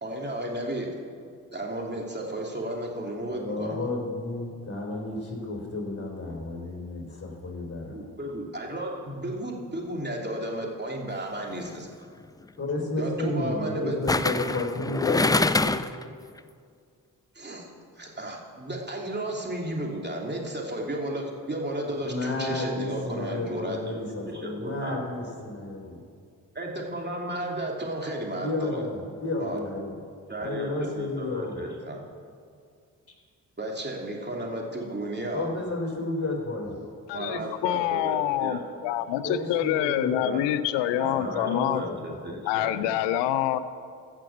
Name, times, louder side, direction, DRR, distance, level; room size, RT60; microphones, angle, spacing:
voice 1, 0.0-0.9 1.5-3.9 7.9-11.9 13.0-14.0 14.2-14.4 17.3-17.7 18.0-24.0 24.3-25.0 26.5-28.8 29.4-29.6 30.3-32.0 33.6-35.5 37.1-38.6 40.2-40.4 41.0-42.9, right 1 dB, 25° right, -1 dB, 2.9 m, -33 dB
voice 2, 3.3-8.0 12.6-15.7 22.1-26.0 28.4-30.0 30.4-31.7 35.3-36.8 37.3-37.4 39.2-40.4 41.1-42.4, left 2 dB, 35° left, 0 dB, 3.7 m, -32 dB
sound 1, 11.4-11.7 14.1-16.0 16.4-16.5, left 3 dB, 10° left, 0.4 m, -25 dB
voice 3, 37.1-41.8 42.5-43.6, left 12 dB, 85° left, 14 dB, 0.6 m, -26 dB
15.0 x 6.3 x 7.2 m, 2.2 s
hypercardioid pair, 40°, 42 cm